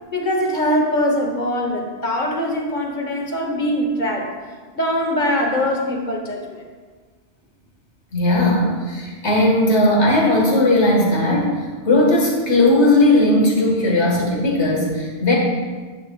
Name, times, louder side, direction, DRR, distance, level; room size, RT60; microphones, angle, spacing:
voice 1, 0.1-4.3 4.7-6.6, equal, 45° left, 1 dB, 1.2 m, -22 dB
voice 2, 8.1-11.5 11.9-15.3, left 1 dB, 75° left, -2 dB, 1.9 m, -17 dB
9.8 x 6.4 x 2.3 m, 1.4 s
omnidirectional pair, 1.2 m